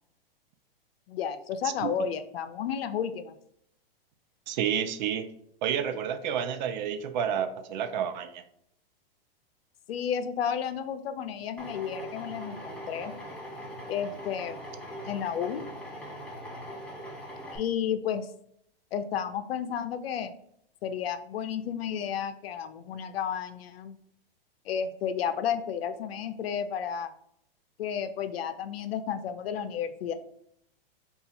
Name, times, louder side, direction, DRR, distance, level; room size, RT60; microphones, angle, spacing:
voice 1, 1.1-3.3 9.9-13.1 13.9-14.6 15.1-15.6 17.5-18.3 18.9-20.3 20.8-24.0 24.7-27.1 27.8-30.1, left 8 dB, 80° left, 10 dB, 0.5 m, -32 dB
voice 2, 4.5-5.3 5.6-8.4, right 8 dB, 50° right, 9 dB, 0.4 m, -30 dB
Drill, 11.6-17.6, equal, 5° left, 0.6 m, -41 dB
2.7 x 2.3 x 4.1 m, 0.71 s
hypercardioid pair, 120°, 30 cm